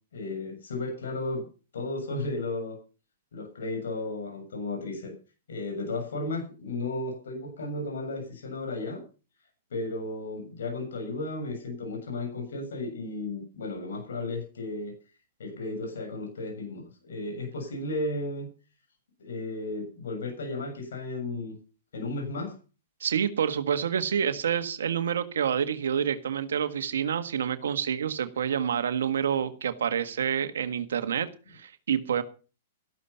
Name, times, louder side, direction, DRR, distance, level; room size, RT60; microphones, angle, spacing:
voice 1, 0.1-1.4 1.7-2.8 3.3-5.1 5.5-9.0 9.7-14.9 15.4-18.5 19.2-21.6 21.9-22.6, left 2 dB, 85° left, 4 dB, 7.1 m, -34 dB
voice 2, 23.0-32.2, right 8 dB, 85° right, 10 dB, 1.5 m, -28 dB
13.5 x 12.5 x 5.6 m, 0.36 s
hypercardioid pair, 130°, 0 cm